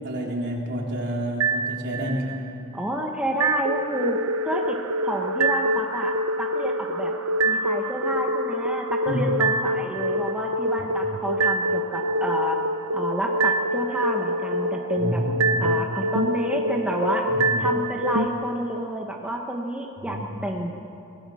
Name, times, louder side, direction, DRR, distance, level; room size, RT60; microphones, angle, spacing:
voice 1, 0.0-2.4 9.1-9.3 10.8-11.2 15.0-15.8 17.3-17.7 20.0-20.2, equal, 50° right, -1 dB, 3.6 m, -29 dB
sound 1, 1.4-2.4 3.4-18.3, right 1 dB, 65° right, 0.8 m, -25 dB
voice 2, 2.7-4.2 4.4-4.8 5.0-7.1 7.4-12.6 12.9-15.2 15.6-17.3 17.6-20.7, equal, 5° right, 0 dB, 1.3 m, -29 dB
25.0 x 18.5 x 6.4 m, 2.8 s
head